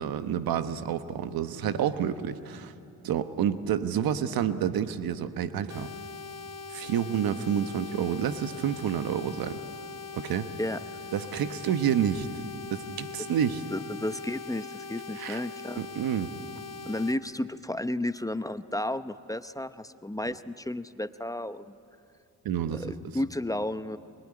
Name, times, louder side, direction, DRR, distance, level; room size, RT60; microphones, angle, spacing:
voice 1, 0.0-2.7 3.0-5.9 6.7-9.6 10.1-10.5 11.1-12.3 12.7-13.6 15.2-15.4 15.8-16.3 20.3-20.4 22.4-22.9, right 9 dB, 80° right, 11 dB, 1.2 m, -29 dB
sound 1, 5.7-17.1, left 4 dB, 45° left, 1.4 m, -41 dB
voice 2, 13.7-15.8 16.9-21.8 22.7-24.0, left 1 dB, 10° left, 12 dB, 0.8 m, -32 dB
23.0 x 22.0 x 9.9 m, 2.7 s
cardioid pair, 65°, 35 cm